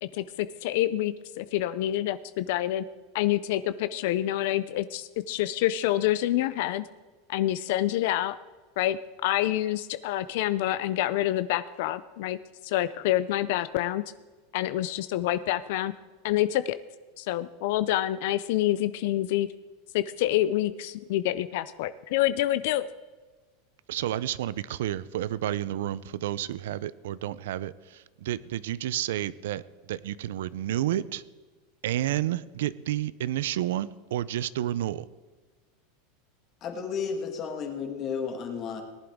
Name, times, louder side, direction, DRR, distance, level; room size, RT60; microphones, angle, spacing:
voice 1, 0.0-2.8 3.1-6.9 7.3-8.4 8.8-12.4 12.6-14.0 14.5-15.9 16.2-16.8 17.2-19.5 19.9-22.9, left 14 dB, 55° left, 14 dB, 0.4 m, -27 dB
voice 2, 23.9-29.6 29.9-31.2 31.8-35.0, right 12 dB, 80° right, 18 dB, 0.5 m, -30 dB
voice 3, 36.6-38.8, left 6 dB, 30° left, 4 dB, 1.6 m, -32 dB
18.5 x 11.0 x 3.6 m, 1.3 s
supercardioid pair, 175°, 0 cm